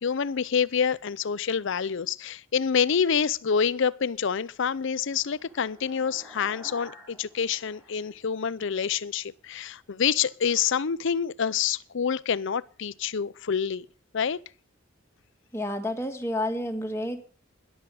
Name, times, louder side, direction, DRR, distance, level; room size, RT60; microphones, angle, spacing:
voice 1, 0.0-13.9 14.1-14.4, left 7 dB, 65° left, 0.6 m, -27 dB
sound 1, 4.2-8.9, equal, 15° right, 5.6 m, -52 dB
voice 2, 15.5-17.2, left 1 dB, 15° left, 1.8 m, -30 dB
14.0 x 11.0 x 4.8 m
head